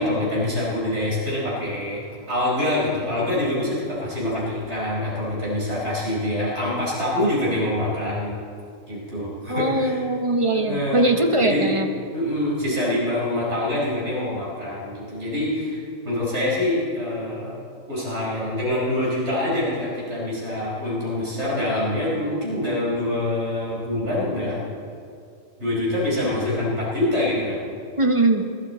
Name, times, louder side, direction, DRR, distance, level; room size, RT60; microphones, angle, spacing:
voice 1, 0.0-2.0 2.3-8.3 8.9-10.0 10.5-11.1 11.4-11.7 12.1-17.6 17.9-24.6 25.6-27.6, left 1 dB, 55° right, -6 dB, 5.0 m, -25 dB
voice 2, 9.5-11.9 28.0-28.5, right 2 dB, 30° right, 5 dB, 0.8 m, -21 dB
21.0 x 13.5 x 4.2 m, 2.3 s
omnidirectional pair, 1.4 m